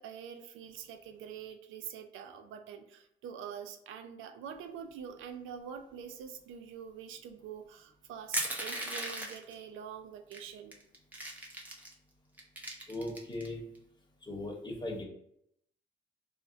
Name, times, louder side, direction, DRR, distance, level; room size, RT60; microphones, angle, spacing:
voice 1, 0.0-10.8, right 7 dB, 85° right, 7 dB, 0.4 m, -45 dB
Crushing, 8.3-9.5 10.3-10.4 10.7-11.9 12.4-13.5, right 1 dB, 10° right, 0.6 m, -37 dB
voice 2, 12.9-13.6 14.2-15.0, left 1 dB, 20° left, -1 dB, 0.9 m, -38 dB
2.5 x 2.0 x 3.8 m, 0.73 s
cardioid pair, 90°, 20 cm